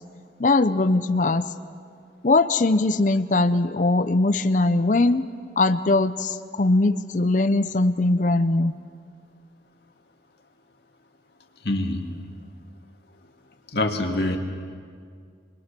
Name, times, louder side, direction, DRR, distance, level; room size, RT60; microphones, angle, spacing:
voice 1, 0.4-1.5 2.2-5.2 5.6-8.7, left 2 dB, 45° left, 10 dB, 0.6 m, -21 dB
voice 2, 11.6-12.0 13.7-14.4, left 2 dB, 60° left, 3 dB, 2.2 m, -24 dB
29.5 x 22.0 x 6.8 m, 2.1 s
head